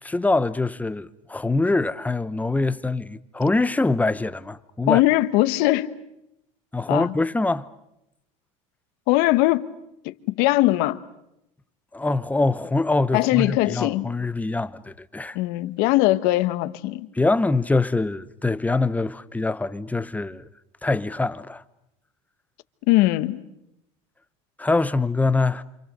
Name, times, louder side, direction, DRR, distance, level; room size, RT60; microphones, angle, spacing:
voice 1, 0.0-5.0 6.7-7.7 11.9-15.4 17.1-20.4 20.8-21.6 24.6-25.6, left 3 dB, 10° left, 1.0 m, -24 dB
voice 2, 4.9-5.9 6.9-7.1 9.1-9.7 10.0-11.0 13.1-14.1 15.3-17.1 22.9-23.4, left 18 dB, 70° left, 1.2 m, -20 dB
28.5 x 27.0 x 6.7 m
supercardioid pair, 100°, 16 cm